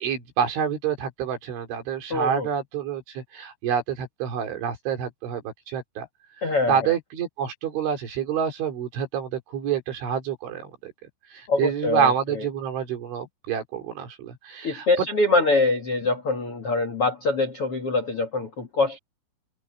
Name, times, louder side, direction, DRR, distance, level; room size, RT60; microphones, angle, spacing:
voice 1, 0.0-6.1 6.7-10.9 11.3-14.9, right 8 dB, 65° right, 6.2 m, -27 dB
voice 2, 2.1-2.5 6.4-7.0 11.5-12.5 14.6-19.0, left 3 dB, 50° left, 1.7 m, -24 dB
omnidirectional pair, 5.8 m